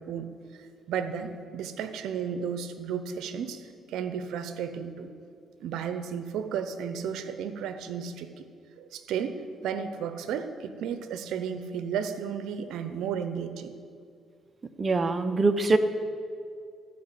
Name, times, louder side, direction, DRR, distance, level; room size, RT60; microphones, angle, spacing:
voice 1, 0.0-5.1 5.6-8.5 8.8-13.7, right 7 dB, 85° right, 9 dB, 0.7 m, -33 dB
voice 2, 14.8-15.8, right 3 dB, 35° right, 9 dB, 0.7 m, -23 dB
13.0 x 5.1 x 7.5 m, 2.3 s
cardioid pair, 90°, 0 cm